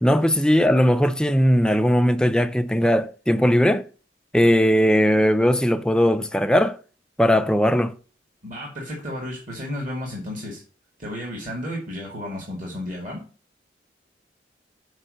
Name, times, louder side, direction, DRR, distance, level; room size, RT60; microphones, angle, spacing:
voice 1, 0.0-3.9 4.3-6.8 7.2-7.9, equal, 5° left, 0.4 m, -19 dB
voice 2, 8.4-10.6 11.0-13.2, left 1 dB, 45° right, 2.2 m, -32 dB
6.4 x 4.7 x 6.4 m
head